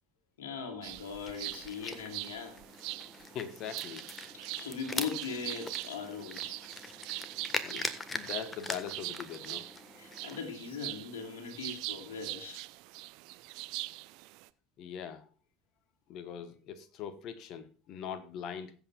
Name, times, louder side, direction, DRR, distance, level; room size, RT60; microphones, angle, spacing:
voice 1, 0.4-2.6 4.3-6.6 7.0-7.1 9.9-12.6, left 5 dB, 70° left, 2.5 m, -40 dB
sound 1, 0.8-14.5, right 22 dB, 60° right, 0.5 m, -43 dB
sound 2, 1.3-10.4, left 3 dB, 20° left, 1.4 m, -42 dB
voice 2, 3.3-4.0 7.6-9.7 14.8-15.2 16.1-18.7, left 8 dB, 50° left, 1.1 m, -41 dB
21.5 x 8.2 x 2.4 m
figure-of-eight pair, 65°, 0 cm